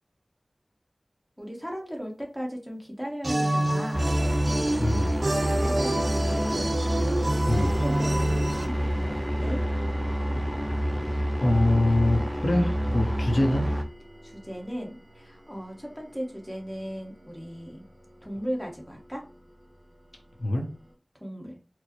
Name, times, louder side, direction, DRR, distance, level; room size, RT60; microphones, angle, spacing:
voice 1, 1.4-4.1 5.5-7.1 7.4-9.6 14.2-17.9 18.2-19.2 21.2-21.6, equal, 5° left, 0 dB, 1.1 m, -36 dB
sound 1, 3.2-8.7, right 1 dB, 65° right, 0.5 m, -27 dB
sound 2, 3.9-13.8, equal, 15° right, 0.5 m, -28 dB
voice 2, 4.8-5.2 7.5-7.7 11.4-13.7 20.4-20.7, left 1 dB, 80° left, 1 dB, 0.7 m, -24 dB
sound 3, 7.5-20.9, equal, 50° right, 1.2 m, -45 dB
4.4 x 2.1 x 3.0 m, 0.34 s
wide cardioid pair, 55°, 0 cm